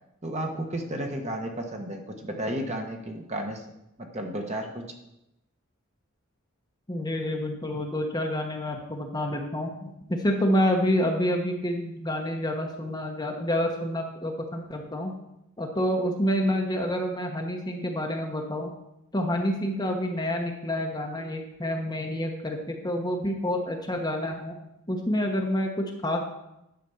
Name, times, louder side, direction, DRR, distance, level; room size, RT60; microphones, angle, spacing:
voice 1, 0.2-3.6 4.1-4.8, right 1 dB, 30° right, 3 dB, 1.3 m, -32 dB
voice 2, 6.9-15.2 15.6-18.7 19.1-24.6 24.9-26.2, equal, 20° left, 2 dB, 1.0 m, -28 dB
10.5 x 5.2 x 6.9 m, 0.86 s
head